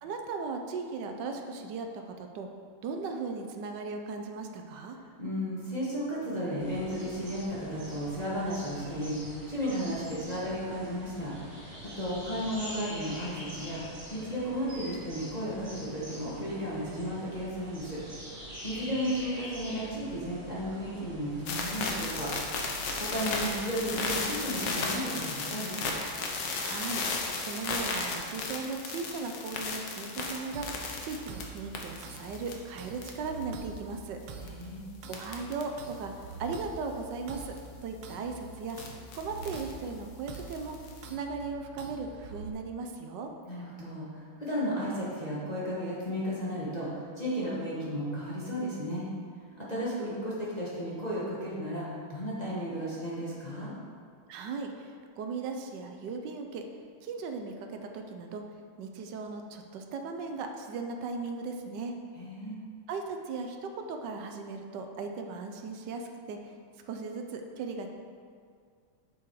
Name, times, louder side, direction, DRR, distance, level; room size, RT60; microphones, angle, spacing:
voice 1, 0.0-2.5 2.8-5.0 26.6-34.2 35.1-36.1 36.4-37.5 37.8-38.8 39.1-40.8 41.1-43.3 54.3-56.6 57.0-58.4 58.8-61.9 62.9-66.5 66.9-67.9, right 4 dB, 70° right, 4 dB, 1.1 m, -37 dB
voice 2, 5.2-13.8 14.1-18.0 18.6-22.3 23.0-25.9 34.4-34.9 43.5-49.1 49.6-53.7 62.2-62.6, equal, 20° left, -8 dB, 1.4 m, -34 dB
sound 1, 6.6-24.6, equal, 40° right, 2.7 m, -45 dB
sound 2, 21.5-32.5 32.9-33.4 34.4-34.6 35.1-35.6 35.9-36.0 37.4-37.6 38.7-39.7 40.3-41.1, left 3 dB, 60° left, 1.5 m, -34 dB
sound 3, 30.5-42.5, right 4 dB, 90° right, 1.6 m, -46 dB
7.1 x 6.9 x 4.7 m, 2.1 s
omnidirectional pair, 2.4 m